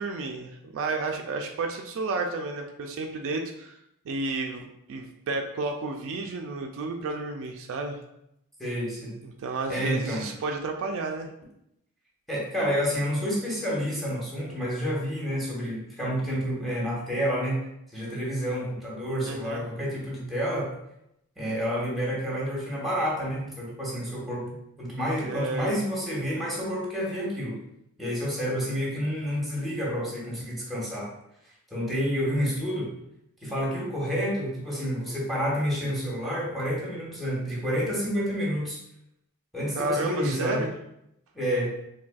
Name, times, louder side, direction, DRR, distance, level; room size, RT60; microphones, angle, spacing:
voice 1, 0.0-3.8 4.1-8.0 9.2-11.3 19.3-19.6 25.2-25.8 39.8-40.7, right 3 dB, 60° right, 3 dB, 0.3 m, -31 dB
voice 2, 8.6-9.1 9.7-10.3 12.3-17.6 17.9-20.7 21.4-27.6 28.0-31.1 31.7-32.9 33.4-38.8 39.5-40.7 41.3-41.7, equal, ahead, -5 dB, 0.9 m, -29 dB
4.0 x 2.6 x 2.3 m, 0.81 s
head